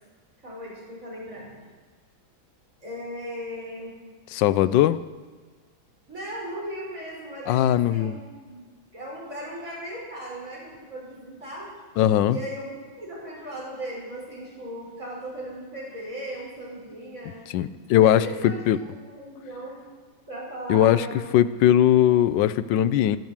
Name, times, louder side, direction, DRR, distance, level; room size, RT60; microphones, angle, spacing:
voice 1, 0.4-1.7 2.8-3.9 6.1-11.7 12.3-19.8 20.3-21.4 21.9-22.1, equal, 40° right, -5 dB, 6.6 m, -37 dB
voice 2, 4.3-5.0 7.5-8.2 12.0-12.4 17.5-18.8 20.7-21.1 21.3-23.2, left 11 dB, 75° left, 14 dB, 1.2 m, -20 dB
13.5 x 12.5 x 7.2 m, 1.5 s
omnidirectional pair, 2.1 m